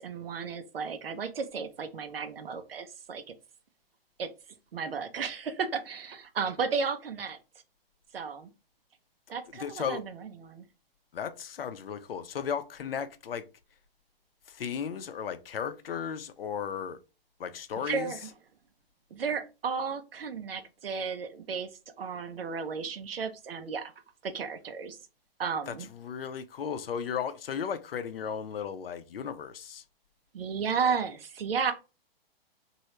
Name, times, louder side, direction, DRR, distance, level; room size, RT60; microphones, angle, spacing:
voice 1, 0.0-3.2 4.2-4.3 4.7-7.4 8.1-8.5 9.3-10.7 17.8-18.2 19.1-21.7 22.0-23.9 24.2-25.0 25.4-25.9 30.3-31.7, right 5 dB, 75° right, 0.8 m, -33 dB
voice 2, 9.5-10.0 11.1-13.5 14.5-17.0 17.4-18.3 25.7-29.8, left 7 dB, 70° left, 0.6 m, -35 dB
3.1 x 2.7 x 3.0 m
figure-of-eight pair, 115°, 30 cm